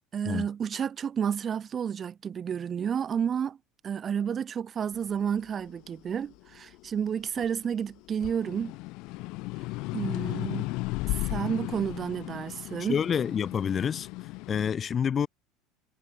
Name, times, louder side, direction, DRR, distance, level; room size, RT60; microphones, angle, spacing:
voice 1, 0.1-3.6 3.8-8.8 9.9-10.7 11.1-13.0, right 8 dB, 25° right, 4.9 m, -31 dB
sound 1, 5.1-7.7 8.1-14.7, left 24 dB, 55° left, 4.0 m, -35 dB
voice 2, 12.8-14.1 14.5-15.3, left 7 dB, 20° left, 1.5 m, -28 dB
cardioid pair, 170°, 0 cm